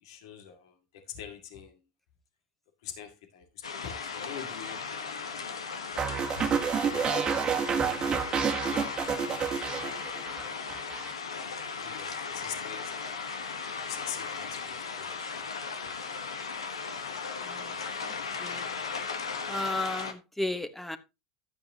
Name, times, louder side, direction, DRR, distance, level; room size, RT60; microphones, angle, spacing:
voice 1, 0.0-1.7 2.8-7.3 8.0-8.9 9.2-9.5 9.8-10.1 10.4-11.1 11.8-13.5 13.9-15.5, left 9 dB, 70° left, 2.0 m, -45 dB
sound 1, 3.6-20.1, left 5 dB, 90° left, 1.2 m, -37 dB
sound 2, 6.0-10.4 10.7-11.1, right 7 dB, 30° right, 1.5 m, -29 dB
voice 2, 19.5-21.0, left 2 dB, 5° left, 1.1 m, -33 dB
12.0 x 8.8 x 2.8 m
hypercardioid pair, 85°, 3 cm